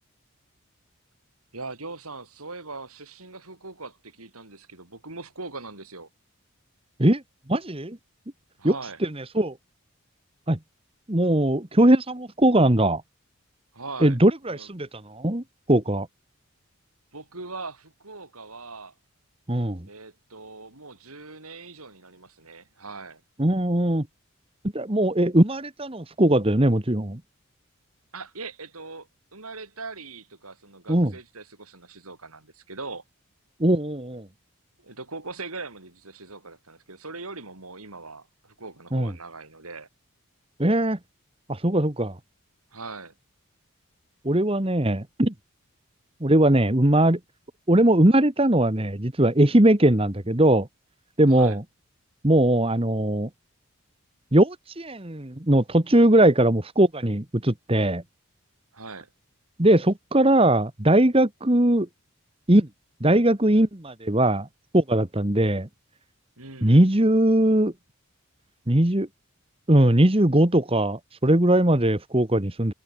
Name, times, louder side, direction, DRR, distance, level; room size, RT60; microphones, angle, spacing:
voice 1, 1.5-6.1 8.6-9.0 13.7-14.2 14.5-14.7 17.1-18.9 19.8-23.2 28.1-33.0 34.8-39.9 42.7-43.1 51.3-51.6 58.7-59.1 66.4-66.9, right 3 dB, 80° right, 5.6 m, -40 dB
voice 2, 7.5-8.0 8.6-8.7 9.3-9.5 10.5-10.6 11.1-13.0 14.0-16.1 19.5-19.9 23.4-24.1 24.7-27.2 30.9-31.1 33.6-34.3 38.9-39.1 40.6-41.0 41.5-42.2 44.2-45.3 46.2-47.2 47.7-50.7 51.2-51.6 52.2-53.3 54.3-58.0 59.6-61.9 62.5-62.7 63.0-64.5 64.7-65.7 66.6-67.7 68.7-69.1 69.7-72.7, right 1 dB, 25° right, 1.5 m, -20 dB
head